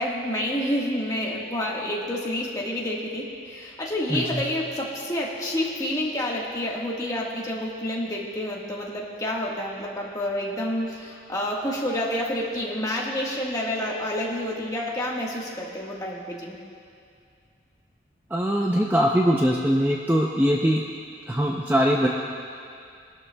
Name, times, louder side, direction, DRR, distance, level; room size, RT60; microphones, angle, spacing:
voice 1, 0.0-16.6, left 1 dB, 20° left, -3 dB, 1.4 m, -29 dB
voice 2, 4.1-4.4 18.3-20.8 21.3-22.1, equal, 10° right, -1 dB, 0.5 m, -22 dB
20.5 x 12.0 x 2.2 m, 2.3 s
head